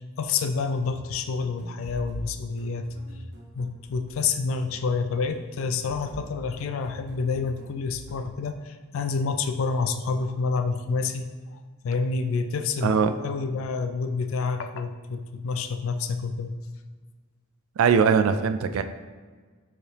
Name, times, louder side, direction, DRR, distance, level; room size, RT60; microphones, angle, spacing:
voice 1, 0.2-2.9 3.5-11.3 11.5-11.6 11.8-16.5, left 4 dB, 70° left, 8 dB, 0.3 m, -28 dB
sound 1, 0.8-8.4, equal, 50° right, 0.7 m, -44 dB
voice 2, 12.8-13.1 17.8-18.8, right 6 dB, 80° right, 10 dB, 0.3 m, -21 dB
4.8 x 2.9 x 3.3 m, 1.5 s
head